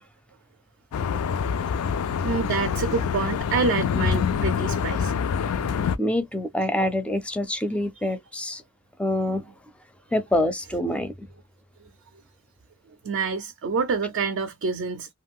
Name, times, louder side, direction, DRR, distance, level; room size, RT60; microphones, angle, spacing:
sound 1, 0.9-6.0, left 6 dB, 75° left, 0.3 m, -26 dB
voice 1, 2.2-5.1 13.0-15.1, right 5 dB, 55° right, 0.4 m, -27 dB
voice 2, 6.0-8.6 9.0-9.4 10.1-11.3, left 1 dB, 5° left, 0.4 m, -26 dB
2.5 x 2.2 x 3.5 m
head